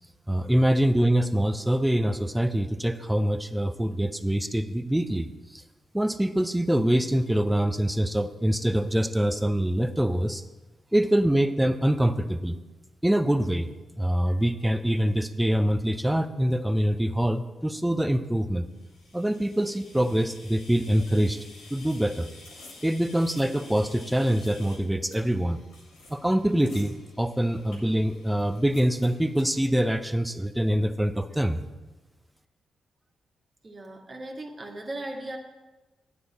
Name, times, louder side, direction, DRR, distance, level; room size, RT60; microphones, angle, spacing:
voice 1, 0.3-5.6 5.9-10.4 10.9-12.6 13.0-13.7 14.0-18.7 19.1-21.4 21.7-22.3 22.8-25.6 26.1-31.6, right 1 dB, 10° right, 10 dB, 0.7 m, -24 dB
sound 1, 18.7-29.6, left 2 dB, 90° left, 2.3 m, -50 dB
voice 2, 33.6-35.4, right 1 dB, 40° right, 1 dB, 1.8 m, -38 dB
9.4 x 8.6 x 4.2 m, 1.2 s
hypercardioid pair, 40°, 0 cm